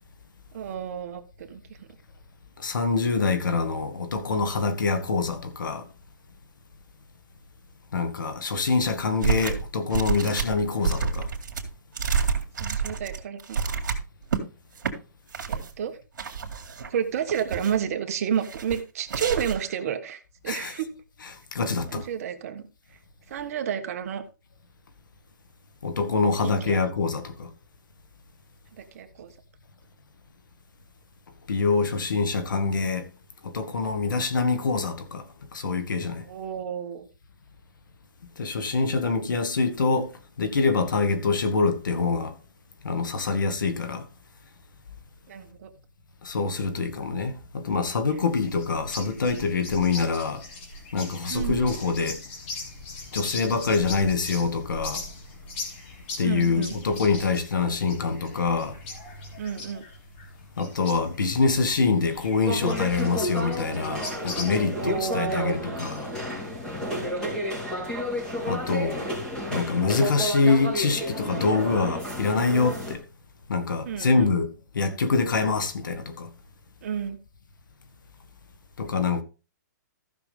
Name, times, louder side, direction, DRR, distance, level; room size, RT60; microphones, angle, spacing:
voice 1, 0.5-1.6 12.6-13.6 15.5-16.0 16.9-20.9 21.9-22.7 23.3-24.2 26.4-26.8 28.8-29.3 36.3-37.1 45.3-45.7 51.3-51.6 56.2-56.7 59.4-59.8 64.8-65.6 66.8-67.4 73.8-74.3 76.8-77.2, right 8 dB, 50° right, 1.3 m, -31 dB
voice 2, 2.6-5.9 7.9-11.3 20.5-20.7 21.5-22.1 25.8-27.5 31.5-33.1 33.4-35.2 35.5-36.2 38.4-40.1 40.4-42.4 42.8-44.0 46.2-50.4 50.9-52.2 53.1-55.0 56.2-58.8 60.6-66.1 68.5-69.1 69.5-73.0 73.5-74.5 74.7-76.3 78.8-79.2, left 4 dB, 80° left, 1.9 m, -25 dB
sound 1, 9.2-9.7 9.9-14.4 14.8-14.9 15.3-15.7 16.2-16.9 17.3-17.9 18.4-18.8 19.1-19.7, right 5 dB, 70° right, 2.4 m, -28 dB
sound 2, 48.3-64.7, left 2 dB, 35° left, 3.1 m, -40 dB
sound 3, 62.4-72.9, equal, 5° left, 3.5 m, -31 dB
14.5 x 6.2 x 3.5 m
hypercardioid pair, 155°, 10 cm